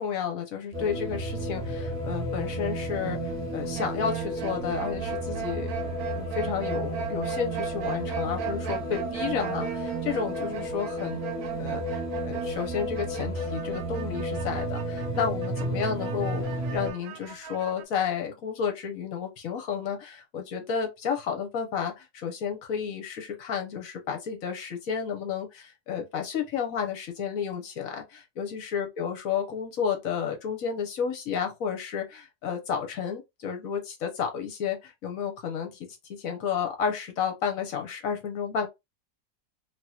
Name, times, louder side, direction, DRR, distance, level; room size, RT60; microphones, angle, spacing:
voice 1, 0.0-11.2 11.6-35.8 36.1-38.7, left 7 dB, 55° left, 1.1 m, -31 dB
sound 1, 0.7-16.9, right 1 dB, 35° right, 1.2 m, -32 dB
sound 2, 3.7-17.8, right 11 dB, 70° right, 0.9 m, -38 dB
3.2 x 2.9 x 2.3 m
omnidirectional pair, 1.9 m